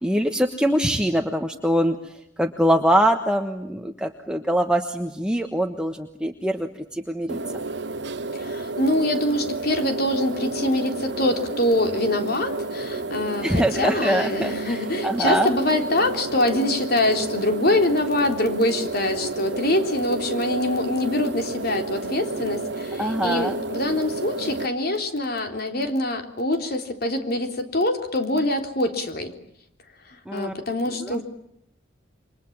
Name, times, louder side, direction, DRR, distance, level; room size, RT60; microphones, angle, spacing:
voice 1, 0.0-2.1 2.4-7.4 13.4-15.5 23.0-23.6 30.3-30.5 31.0-31.2, equal, 5° right, 4 dB, 1.3 m, -23 dB
sound 1, 7.3-24.7, right 2 dB, 60° right, 1.1 m, -31 dB
voice 2, 8.3-29.3 30.1-31.2, left 1 dB, 55° left, 5 dB, 3.7 m, -24 dB
29.0 x 24.5 x 7.4 m, 0.76 s
head